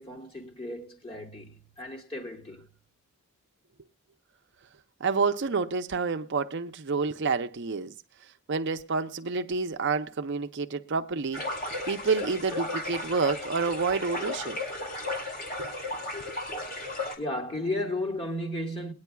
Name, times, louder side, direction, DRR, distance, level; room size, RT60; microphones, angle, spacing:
voice 1, 0.0-2.7 17.2-18.9, left 1 dB, 25° left, 1.9 m, -34 dB
voice 2, 5.0-7.9 8.5-14.6 15.6-15.7, right 4 dB, 55° right, 0.6 m, -29 dB
sound 1, 11.3-17.1, left 2 dB, 45° left, 2.7 m, -34 dB
21.0 x 9.6 x 2.3 m
head